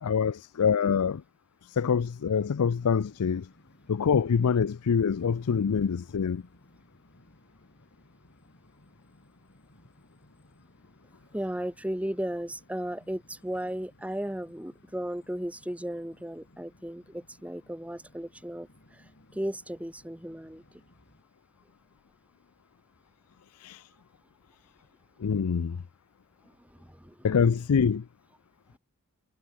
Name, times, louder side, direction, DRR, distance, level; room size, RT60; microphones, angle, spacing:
voice 1, 0.0-1.2 1.6-3.5 3.9-6.4 23.6-23.9 25.2-25.8 27.2-28.0, left 6 dB, 85° left, 0.5 m, -25 dB
sound 1, 2.6-21.2, left 1 dB, 50° left, 6.0 m, -60 dB
voice 2, 11.3-19.0 19.3-20.6 26.6-27.3, equal, 5° right, 2.0 m, -35 dB
head